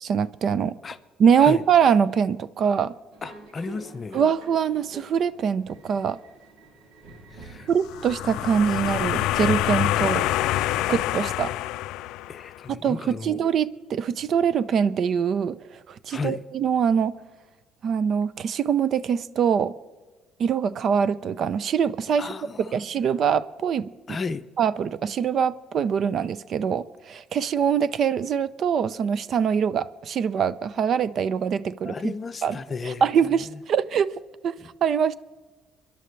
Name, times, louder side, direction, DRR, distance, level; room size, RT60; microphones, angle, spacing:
voice 1, 0.0-0.8 1.2-2.9 4.1-6.2 7.7-10.3 10.9-11.5 12.7-15.6 15.9-17.2 17.8-19.7 20.4-22.3 22.7-23.9 24.6-32.1 32.4-32.6 32.8-34.1 34.4-34.5 34.8-35.2, right 7 dB, 50° right, 0.5 m, -23 dB
Subway metro underground, 3.1-10.7, right 2 dB, 85° right, 2.8 m, -45 dB
voice 2, 3.2-4.2 7.3-7.7 12.3-13.4 16.1-16.4 22.2-22.8 24.1-24.4 31.8-33.1 33.4-33.6 34.6-34.7, left 4 dB, 30° left, 0.6 m, -34 dB
sound 1, 7.8-12.6, left 15 dB, 85° left, 0.3 m, -26 dB
28.0 x 11.0 x 3.2 m
cardioid pair, 120°, 0 cm